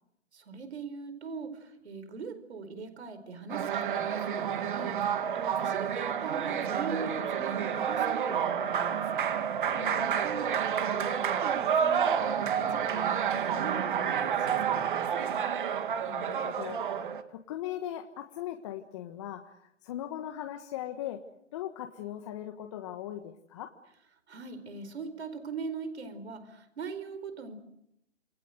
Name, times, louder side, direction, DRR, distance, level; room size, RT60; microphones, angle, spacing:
voice 1, 0.3-9.2 10.0-15.5 24.3-27.5, right 5 dB, 60° right, 12 dB, 4.7 m, -41 dB
sound 1, 3.5-17.2, right 8 dB, 45° right, 2.1 m, -29 dB
voice 2, 9.7-10.1 16.1-21.2 21.5-23.7, left 12 dB, 25° left, 5 dB, 1.4 m, -39 dB
28.0 x 24.0 x 8.0 m, 0.78 s
hypercardioid pair, 155°, 36 cm